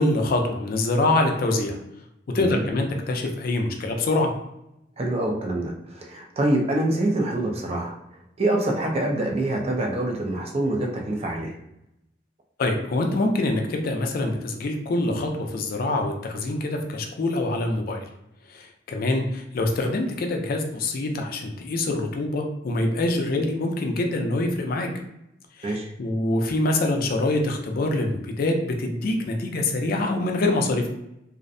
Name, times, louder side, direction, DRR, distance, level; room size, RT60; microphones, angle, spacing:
voice 1, 0.0-1.8 2.3-4.3 12.6-18.0 18.5-24.9 25.6-30.9, left 2 dB, 50° left, 3 dB, 0.3 m, -25 dB
voice 2, 5.0-8.0 8.4-11.5 25.6-25.9, right 1 dB, 35° right, 1 dB, 0.4 m, -25 dB
2.4 x 2.0 x 2.5 m, 0.83 s
head